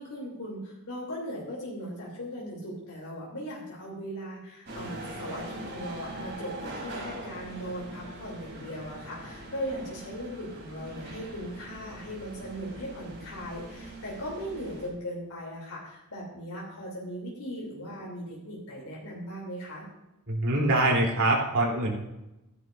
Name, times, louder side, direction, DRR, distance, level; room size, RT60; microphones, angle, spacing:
voice 1, 0.0-19.9, equal, 90° left, -4 dB, 3.1 m, -38 dB
sound 1, 4.7-14.9, right 1 dB, 55° right, 3.8 m, -42 dB
voice 2, 20.3-22.0, right 2 dB, 70° right, -2 dB, 3.4 m, -24 dB
15.5 x 11.0 x 2.6 m, 0.94 s
head